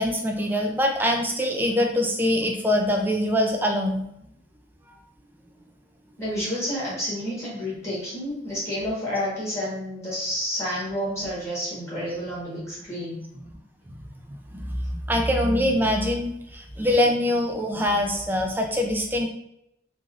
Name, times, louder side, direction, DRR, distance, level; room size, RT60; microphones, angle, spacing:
voice 1, 0.0-4.1 13.3-13.4 14.3-19.3, left 1 dB, 10° right, 2 dB, 0.3 m, -24 dB
voice 2, 6.2-13.2, equal, 15° left, -8 dB, 1.2 m, -30 dB
3.2 x 2.5 x 2.4 m, 0.77 s
head